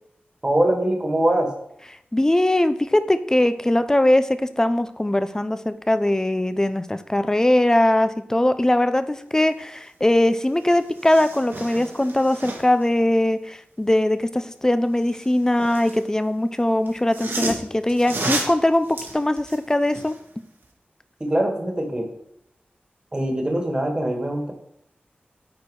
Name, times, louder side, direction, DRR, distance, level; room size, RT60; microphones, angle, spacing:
voice 1, 0.4-1.5 21.2-22.1 23.1-24.5, right 1 dB, 25° right, 3 dB, 1.7 m, -22 dB
voice 2, 2.1-20.2, left 1 dB, 15° left, 12 dB, 0.6 m, -21 dB
sound 1, 10.2-10.3 10.6-12.8 15.0-16.1 16.9-20.2 20.6-20.7, right 2 dB, 70° right, 1.7 m, -32 dB
9.3 x 4.4 x 4.8 m, 0.75 s
wide cardioid pair, 80°, 4 cm